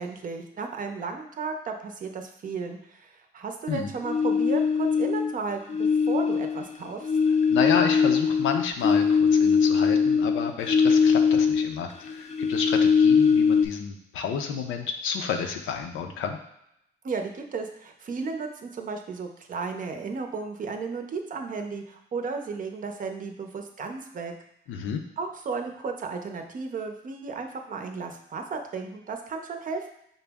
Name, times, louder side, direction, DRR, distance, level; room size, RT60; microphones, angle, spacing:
voice 1, 0.0-5.8 6.1-7.1 17.0-24.3 25.2-29.9, right 4 dB, 45° right, 5 dB, 0.6 m, -34 dB
sound 1, 4.0-5.4 5.7-11.8 12.1-13.7, left 6 dB, 35° left, 0.4 m, -21 dB
voice 2, 7.5-16.4 24.7-25.0, left 6 dB, 85° left, 4 dB, 0.5 m, -30 dB
5.3 x 2.0 x 3.4 m, 0.77 s
cardioid pair, 90°, 20 cm